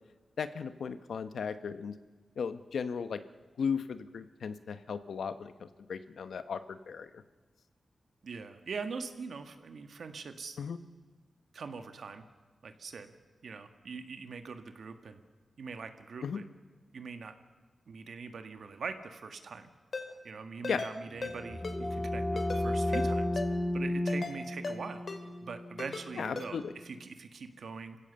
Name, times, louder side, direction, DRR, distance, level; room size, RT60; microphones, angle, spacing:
voice 1, 0.4-1.9 2.4-3.2 3.6-7.2 10.6-10.8 16.2-16.4 20.6-20.8 26.2-26.7, left 6 dB, 90° left, 11 dB, 1.0 m, -36 dB
voice 2, 8.2-10.6 11.5-12.2 12.6-13.1 13.4-15.2 15.6-16.4 16.9-17.3 17.9-19.7 20.2-22.2 22.5-23.3 23.7-25.0 25.4-28.0, right 5 dB, 75° right, 7 dB, 1.7 m, -42 dB
Ringtone, 19.9-20.1 20.6-20.9 21.2-21.3 21.6-21.8 22.4-22.6 22.9-23.1 23.4-23.5 24.1-24.3 24.6-24.8 25.1-25.2 25.8-26.0 26.4-26.5, left 4 dB, 55° left, 2.8 m, -37 dB
sound 1, 21.1-26.7, left 1 dB, 15° left, 1.1 m, -33 dB
27.5 x 16.5 x 7.0 m, 1.4 s
wide cardioid pair, 100°, 0 cm